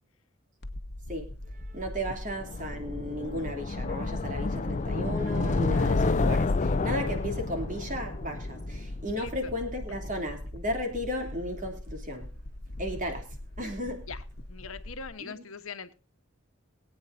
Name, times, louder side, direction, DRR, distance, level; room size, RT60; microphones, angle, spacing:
sound 1, 0.6-15.1, left 1 dB, 50° left, 1.2 m, -41 dB
voice 1, 1.1-12.3 12.8-14.1 15.2-15.4, equal, 40° right, 4 dB, 3.0 m, -35 dB
sound 2, 2.3-9.4, left 3 dB, 35° left, 0.5 m, -29 dB
voice 2, 14.5-15.9, left 5 dB, 75° left, 10 dB, 1.1 m, -41 dB
23.0 x 8.9 x 2.7 m, 0.34 s
head